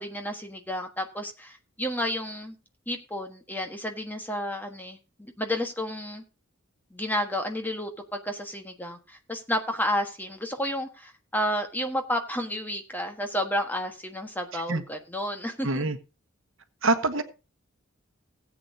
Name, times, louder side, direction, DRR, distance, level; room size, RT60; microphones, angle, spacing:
voice 1, 0.0-2.6 2.9-6.2 6.9-15.8, equal, 10° left, 1.4 m, -31 dB
voice 2, 15.6-16.0 16.8-17.2, right 2 dB, 65° right, 1.2 m, -24 dB
17.5 x 8.6 x 2.8 m
head